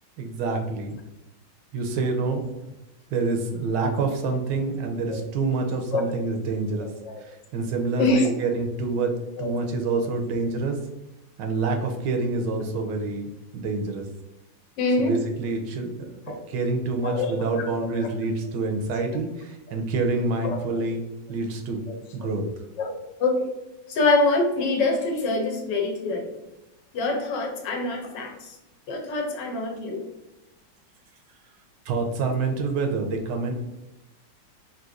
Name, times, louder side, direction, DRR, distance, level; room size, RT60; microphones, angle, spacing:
voice 1, 0.2-1.0 1.7-2.4 3.1-6.9 7.2-10.8 11.4-14.1 15.0-21.0 21.3-21.8 22.1-22.4 31.9-33.5, right 3 dB, 80° right, 4 dB, 1.3 m, -27 dB
voice 2, 6.8-7.2 8.0-8.3 9.4-9.5 14.8-15.2 16.3-16.4 17.0-17.3 20.4-20.8 21.9-22.0 22.8-23.3 23.9-26.3 26.9-28.6 28.9-30.0, left 2 dB, 85° left, 2 dB, 1.4 m, -25 dB
4.0 x 2.6 x 2.4 m, 0.98 s
omnidirectional pair, 1.9 m